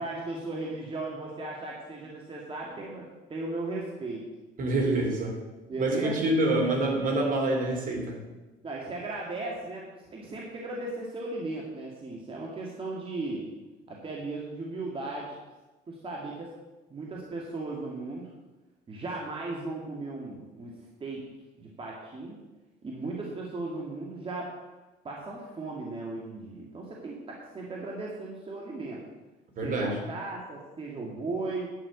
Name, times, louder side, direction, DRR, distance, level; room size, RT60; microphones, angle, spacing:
voice 1, 0.0-4.2 5.7-6.2 8.6-13.5 13.9-15.3 15.9-16.5 16.9-18.3 18.9-20.7 21.0-21.2 21.6-22.4 22.8-24.6 25.0-29.0 29.6-31.7, right 2 dB, 30° right, -3 dB, 2.2 m, -36 dB
voice 2, 4.6-5.4 5.8-8.2 29.6-30.0, right 2 dB, 55° right, 1 dB, 3.3 m, -26 dB
10.0 x 6.0 x 8.2 m, 1.1 s
cardioid pair, 110°, 17 cm